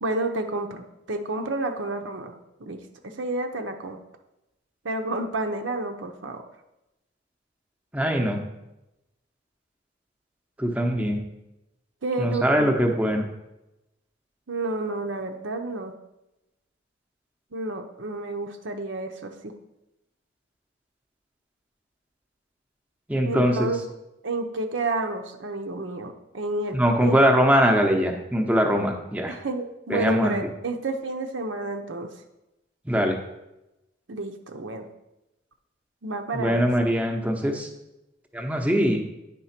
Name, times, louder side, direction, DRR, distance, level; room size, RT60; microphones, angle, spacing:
voice 1, 0.0-2.8 3.2-4.0 4.8-6.4 12.0-13.1 14.5-15.9 17.5-19.5 23.2-23.8 24.2-27.2 29.3-32.1 34.1-34.9 36.0-36.7, right 2 dB, 70° right, 4 dB, 0.8 m, -30 dB
voice 2, 7.9-8.4 10.6-11.2 12.2-13.2 23.1-23.6 26.7-29.3 29.9-30.3 32.9-33.2 36.3-37.7 38.3-39.0, equal, 10° right, 2 dB, 0.8 m, -22 dB
9.2 x 3.7 x 5.8 m, 0.93 s
head